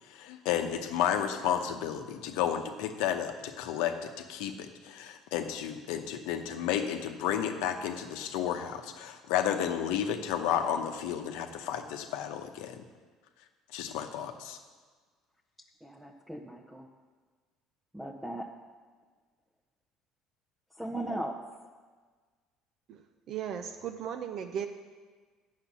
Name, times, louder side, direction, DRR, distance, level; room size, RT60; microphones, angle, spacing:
voice 1, 0.1-12.8 13.7-14.6, left 9 dB, 85° left, 6 dB, 0.8 m, -32 dB
voice 2, 15.8-16.9 17.9-18.5 20.7-21.4, right 1 dB, 5° right, 0 dB, 0.6 m, -38 dB
voice 3, 23.3-24.7, right 8 dB, 55° right, 6 dB, 0.5 m, -36 dB
8.5 x 6.6 x 6.0 m, 1.5 s
cardioid pair, 105°, 0 cm